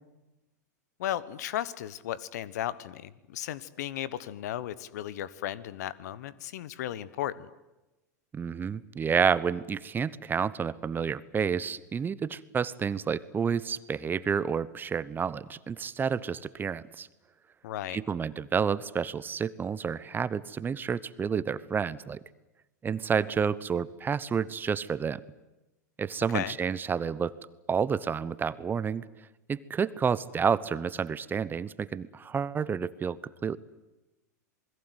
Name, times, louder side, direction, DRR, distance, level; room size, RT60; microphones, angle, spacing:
voice 1, 1.0-7.5 17.6-18.0 26.3-26.5, left 12 dB, 65° left, 19 dB, 1.3 m, -35 dB
voice 2, 8.3-17.1 17.9-22.2 22.8-25.2 26.0-27.3 27.7-29.0 29.5-33.6, right 6 dB, 20° right, 18 dB, 1.0 m, -30 dB
27.5 x 21.0 x 8.2 m, 1.0 s
hypercardioid pair, 100°, 10 cm